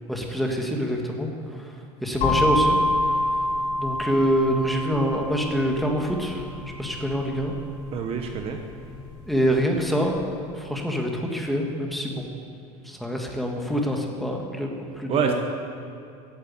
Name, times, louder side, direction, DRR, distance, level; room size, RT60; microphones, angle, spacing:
voice 1, 0.1-1.7 2.0-2.8 3.8-6.5 6.8-7.5 9.3-10.2 10.5-12.3 12.8-15.3, equal, ahead, 1 dB, 1.6 m, -25 dB
sound 1, 2.2-10.0, left 1 dB, 45° left, 4.5 m, -28 dB
voice 2, 7.9-8.6 15.1-15.3, right 7 dB, 35° right, 5 dB, 1.0 m, -26 dB
14.5 x 9.5 x 8.7 m, 2.6 s
cardioid pair, 155°, 17 cm